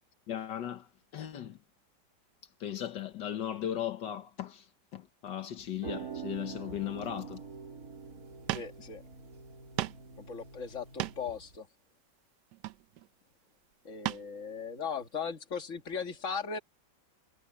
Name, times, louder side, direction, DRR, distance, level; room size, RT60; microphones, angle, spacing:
voice 1, 0.3-0.9 1.1-1.6 2.6-4.7 4.9-7.4, left 10 dB, 80° left, 1.7 m, -37 dB
sound 1, 5.6-11.6, right 6 dB, 55° right, 3.3 m, -45 dB
sound 2, 8.2-8.3 8.5-8.8 9.1-9.2 9.8-10.1 10.7-11.4 12.5-13.1 14.0-14.3 14.8-14.9, right 15 dB, 75° right, 1.2 m, -36 dB
voice 2, 8.5-9.0 10.2-11.7 13.8-16.6, left 6 dB, 45° left, 2.1 m, -38 dB
omnidirectional pair, 1.9 m